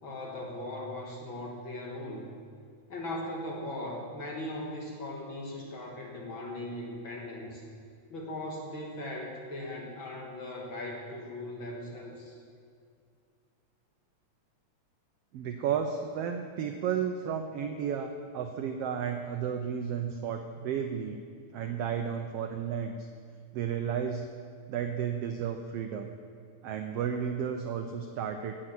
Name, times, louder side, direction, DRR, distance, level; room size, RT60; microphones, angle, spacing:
voice 1, 0.0-2.3 2.9-7.6 8.1-12.3, left 1 dB, 50° left, -1 dB, 1.9 m, -39 dB
voice 2, 15.3-21.2 21.5-23.1 23.5-24.3 24.7-26.1 26.6-28.6, right 7 dB, 85° right, 6 dB, 1.3 m, -33 dB
17.5 x 7.5 x 6.0 m, 2.2 s
omnidirectional pair, 3.5 m